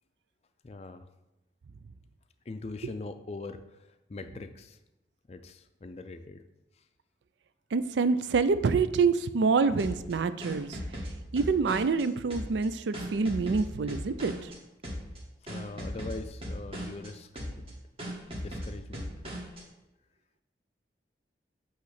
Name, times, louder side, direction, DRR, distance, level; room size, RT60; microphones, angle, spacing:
voice 1, 0.6-1.1 2.5-3.8 4.1-4.8 5.3-6.4 15.5-17.3 17.6-17.7 18.4-19.1, left 3 dB, 35° left, 9 dB, 0.4 m, -41 dB
voice 2, 7.7-10.8 11.3-14.3, right 4 dB, 90° right, 13 dB, 0.4 m, -26 dB
sound 1, 9.8-12.0 12.3-14.6 14.8-15.2 15.5-17.1 17.4-17.7 18.0-19.6, equal, 35° right, 1.5 m, -38 dB
8.3 x 3.1 x 6.4 m, 0.94 s
head